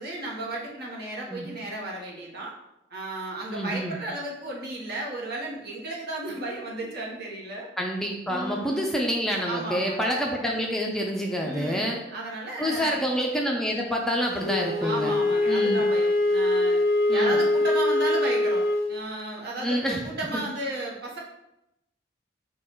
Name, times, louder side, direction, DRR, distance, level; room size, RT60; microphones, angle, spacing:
voice 1, 0.0-2.5 2.9-7.7 8.3-8.9 9.4-10.1 11.4-13.1 14.8-16.8 17.1-21.2, right 1 dB, 60° right, -3 dB, 1.1 m, -34 dB
voice 2, 3.5-4.0 7.8-12.0 12.6-15.1 15.5-15.8 17.1-17.4 19.6-20.0 20.3-20.4, equal, 5° left, -1 dB, 0.4 m, -27 dB
Wind instrument woodwind instrument, 14.4-18.9, left 2 dB, 55° left, 0.5 m, -23 dB
4.7 x 2.3 x 4.4 m, 0.89 s
head